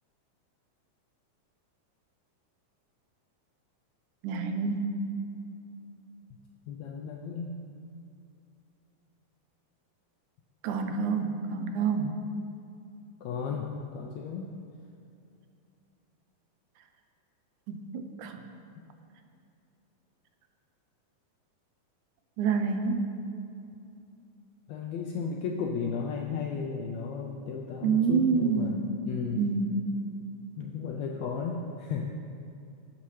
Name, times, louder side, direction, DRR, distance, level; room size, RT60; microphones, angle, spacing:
voice 1, 4.2-4.9 10.6-12.2 17.7-18.4 22.4-23.0 27.8-28.9 29.3-29.8, right 5 dB, 80° right, 6 dB, 2.0 m, -28 dB
voice 2, 6.7-7.6 13.2-14.6 24.7-29.5 30.6-32.0, left 5 dB, 90° left, 1 dB, 1.5 m, -34 dB
15.5 x 5.7 x 3.2 m, 2.5 s
omnidirectional pair, 3.6 m